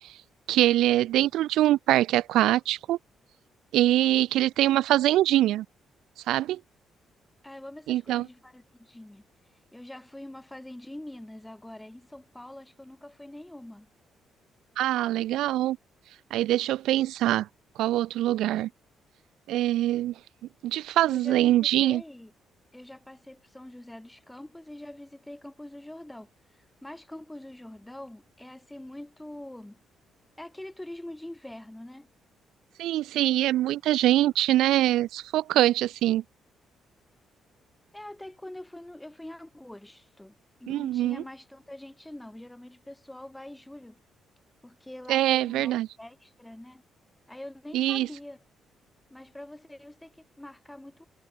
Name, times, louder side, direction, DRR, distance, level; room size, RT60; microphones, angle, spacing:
voice 1, 0.5-3.0 3.7-5.6 6.3-6.6 7.9-8.3 14.8-15.8 16.3-17.5 17.8-18.7 19.5-20.1 20.6-22.0 32.8-36.2 40.7-41.2 45.1-45.9 47.7-48.1, right 14 dB, 85° right, 0.9 m, -23 dB
voice 2, 7.4-9.2 9.5-13.9 21.1-22.3 22.7-29.8 30.4-32.1 37.9-40.3 40.6-44.0 44.6-46.8 47.3-48.4 49.1-51.0, left 1 dB, 10° left, 4.3 m, -44 dB
cardioid pair, 90°, 0 cm